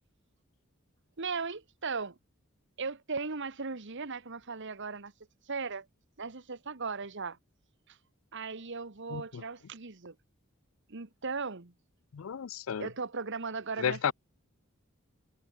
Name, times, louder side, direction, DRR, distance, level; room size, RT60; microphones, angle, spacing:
voice 1, 1.2-2.2 2.8-5.1 5.5-5.9 6.2-7.4 7.9-8.0 8.3-10.1 10.9-11.7 12.8-14.1, right 4 dB, 60° right, 1.5 m, -37 dB
voice 2, 9.1-9.4 12.1-12.9 13.8-14.1, left 7 dB, 70° left, 0.4 m, -32 dB
head